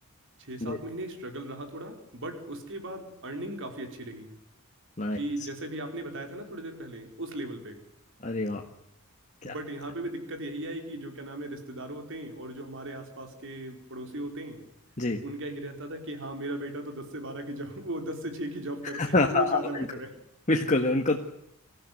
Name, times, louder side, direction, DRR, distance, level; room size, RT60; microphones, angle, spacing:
voice 1, 0.4-4.3 5.1-7.8 9.4-14.6 15.2-20.1, right 1 dB, 60° right, 6 dB, 4.9 m, -37 dB
voice 2, 8.2-8.6 9.4-9.5 15.0-15.2 18.9-19.6 20.5-21.2, left 2 dB, 35° left, 1 dB, 1.8 m, -25 dB
25.0 x 14.5 x 9.4 m, 0.80 s
head